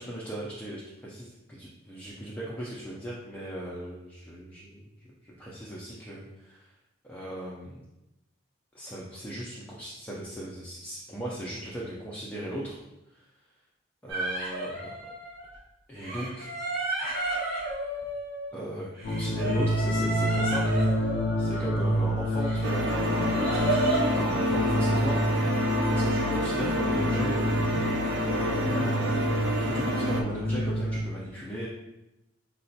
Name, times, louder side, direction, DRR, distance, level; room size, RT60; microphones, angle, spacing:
voice 1, 0.0-4.9 5.2-6.7 7.0-7.8 8.7-12.8 13.1-13.3 14.0-14.9 15.9-16.5 18.5-21.1 21.4-27.4 28.3-31.7, right 1 dB, 10° left, -6 dB, 0.3 m, -38 dB
sound 1, 14.1-15.6 16.0-18.6 19.0-22.0 22.4-24.1, right 1 dB, 55° right, 1.0 m, -32 dB
sound 2, 19.0-31.0, equal, 75° left, 0.5 m, -28 dB
sound 3, 22.6-30.2, equal, 75° right, 0.4 m, -29 dB
3.8 x 2.1 x 2.7 m, 0.94 s
head